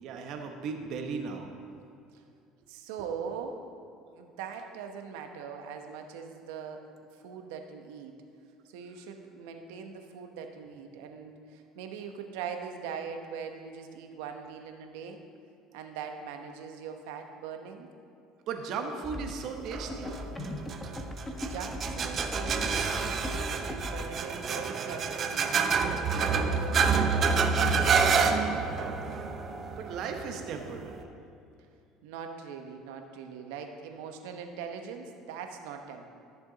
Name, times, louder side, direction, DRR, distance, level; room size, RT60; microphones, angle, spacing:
voice 1, 0.0-1.5 18.5-20.2 29.8-31.1, right 5 dB, 60° right, 4 dB, 1.0 m, -36 dB
voice 2, 2.7-3.6 4.1-6.8 7.2-8.1 8.6-15.2 15.7-17.9 21.3-23.0 23.3-25.6 26.2-29.0 32.0-36.0, right 6 dB, 90° right, 5 dB, 1.0 m, -41 dB
sound 1, 19.0-24.0, left 1 dB, 10° left, 1.0 m, -38 dB
sound 2, 19.7-31.0, right 5 dB, 40° right, 0.6 m, -28 dB
13.5 x 6.9 x 4.0 m, 2.5 s
cardioid pair, 115°, 0 cm